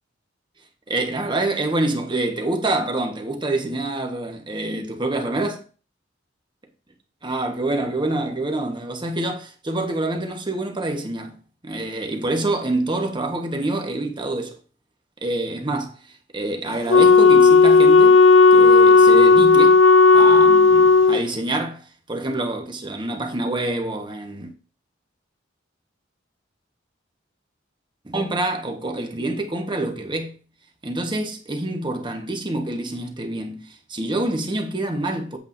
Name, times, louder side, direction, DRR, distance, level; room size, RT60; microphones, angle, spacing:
voice 1, 0.9-5.6 7.2-11.4 11.6-14.5 15.2-15.9 16.3-18.2 18.5-19.8 20.1-24.5 28.0-30.3 30.8-33.6 33.9-35.4, right 2 dB, 25° right, 1.3 m, -26 dB
Wind instrument woodwind instrument, 16.9-21.2, left 4 dB, 75° left, 0.4 m, -12 dB
8.3 x 7.8 x 2.7 m
head